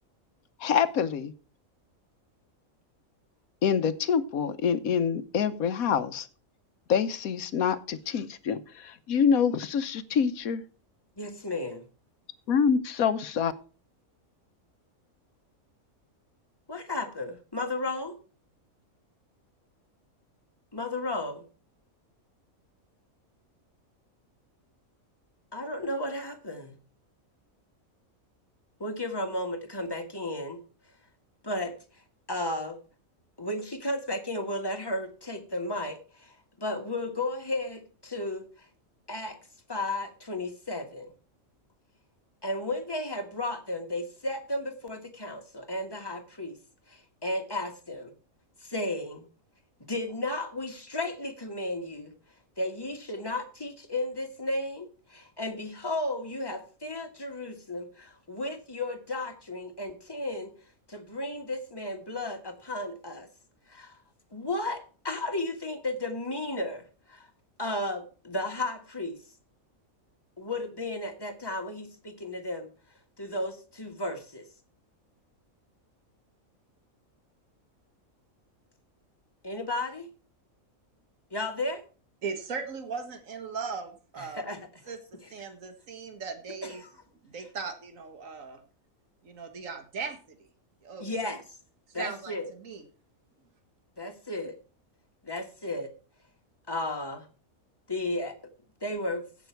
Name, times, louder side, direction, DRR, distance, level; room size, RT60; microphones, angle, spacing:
voice 1, 0.6-1.3 3.6-6.3 6.9-10.6 12.5-13.5, left 7 dB, 90° left, 12 dB, 1.3 m, -26 dB
voice 2, 11.2-11.8 16.7-18.2 20.7-21.5 25.5-26.7 28.8-30.6 31.4-31.7 32.3-32.8 33.4-38.7 39.1-39.4 39.7-41.1 42.4-46.6 46.9-48.1 48.6-49.3 49.8-52.1 52.6-60.5 60.9-63.3 63.7-64.0 64.3-67.3 67.6-69.2 70.4-72.7 73.2-74.5 79.4-80.1 81.3-81.8 84.2-84.9 85.2-85.5 86.6-86.9 91.0-91.4 91.9-92.5 94.0-94.6 95.2-95.9 96.7-97.3 97.9-98.4 98.8-99.2, left 1 dB, 15° left, 4 dB, 1.5 m, -34 dB
voice 3, 82.2-84.4 84.9-85.0 85.3-86.8 87.2-88.6 89.2-90.4 90.8-91.1 92.0-92.9, right 5 dB, 70° right, 7 dB, 1.9 m, -38 dB
16.0 x 6.1 x 4.5 m, 0.38 s
omnidirectional pair, 1.5 m